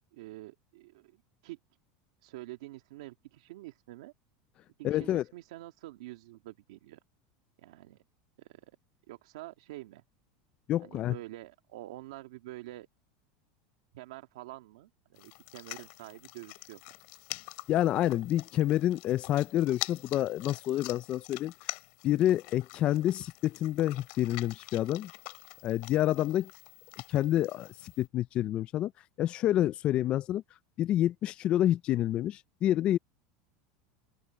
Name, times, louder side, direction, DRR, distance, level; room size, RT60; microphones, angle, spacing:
voice 1, 0.1-1.6 2.2-4.1 4.8-7.0 7.6-8.0 8.4-8.7 9.1-10.0 10.8-12.9 13.9-16.8 26.2-26.3, right 17 dB, 85° right, 1.8 m, -47 dB
voice 2, 4.8-5.2 10.7-11.2 17.7-21.5 22.0-25.1 25.6-26.5 27.1-28.9 29.2-30.4 30.8-33.0, left 13 dB, 35° left, 0.4 m, -28 dB
sound 1, 15.1-28.1, left 27 dB, 60° left, 2.8 m, -45 dB
open air
supercardioid pair, 145°, 3 cm